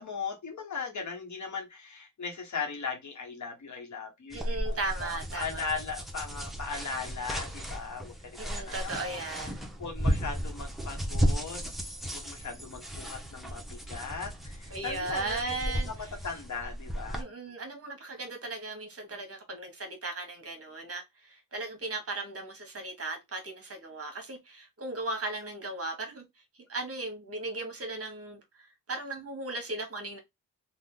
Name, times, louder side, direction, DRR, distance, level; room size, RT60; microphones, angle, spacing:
voice 1, 0.0-9.2 9.8-11.7 12.1-15.4 15.9-17.5, left 5 dB, 50° left, 1.2 m, -38 dB
sound 1, 4.3-17.2, equal, ahead, 0.9 m, -34 dB
voice 2, 4.3-5.7 8.4-9.5 14.7-16.1 17.1-26.2 26.7-30.2, right 2 dB, 40° right, 1.2 m, -37 dB
2.7 x 2.4 x 3.6 m
cardioid pair, 65°, 36 cm